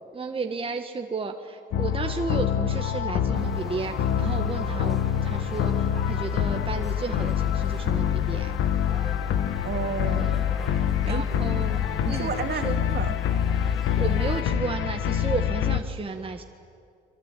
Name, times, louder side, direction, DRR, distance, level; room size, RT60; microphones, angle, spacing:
voice 1, 0.1-8.5 11.0-12.8 14.0-16.4, right 4 dB, 25° right, 3 dB, 1.7 m, -33 dB
sound 1, 1.7-15.8, left 9 dB, 85° left, 1.2 m, -26 dB
sound 2, 3.3-14.4, right 1 dB, ahead, 3.6 m, -44 dB
voice 2, 9.6-10.4 11.1-11.4 12.0-13.1, right 6 dB, 55° right, 6 dB, 2.5 m, -32 dB
30.0 x 23.0 x 8.5 m, 2.3 s
cardioid pair, 90°, 20 cm